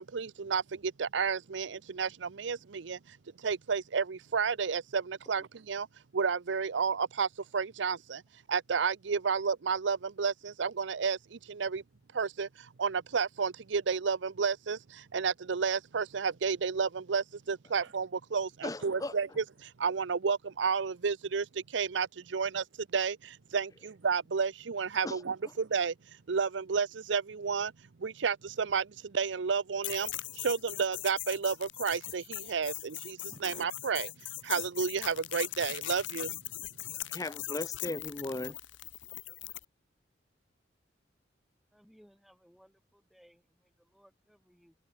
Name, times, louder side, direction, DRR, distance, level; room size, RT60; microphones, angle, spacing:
voice 1, 0.0-5.9 6.1-8.2 8.5-11.8 12.1-27.7 28.0-36.4, right 5 dB, 75° right, 0.6 m, -32 dB
voice 2, 18.6-19.1 25.0-25.2 33.3-33.4 37.1-38.6, left 2 dB, 20° left, 0.7 m, -37 dB
sound 1, 29.8-39.7, left 16 dB, 85° left, 0.8 m, -40 dB
voice 3, 41.7-44.7, equal, ahead, 2.3 m, -63 dB
open air
head